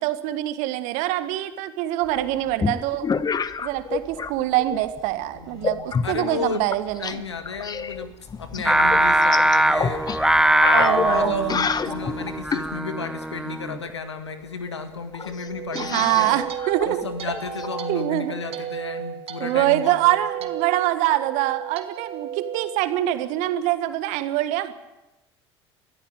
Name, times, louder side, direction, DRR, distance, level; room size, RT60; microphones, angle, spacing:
voice 1, 0.0-3.1 3.6-7.3 10.7-11.6 15.8-17.0 17.9-18.3 19.4-24.7, right 14 dB, 60° right, 11 dB, 1.6 m, -24 dB
sound 1, 2.1-4.3 4.6-5.1 5.6-7.1 7.4-12.7 14.4-14.5 14.7-14.8 15.1-17.7, left 6 dB, 30° left, 1.1 m, -28 dB
voice 2, 5.3-6.7 7.0-10.1 10.6-16.4 16.8-20.0 20.4-20.5, left 5 dB, 90° left, 9 dB, 1.7 m, -33 dB
Singing, 8.7-13.9, right 1 dB, 5° right, 1.2 m, -21 dB
sound 2, 15.2-23.6, right 9 dB, 45° right, 2.2 m, -34 dB
22.0 x 14.0 x 8.9 m, 1.0 s
hypercardioid pair, 65°, 14 cm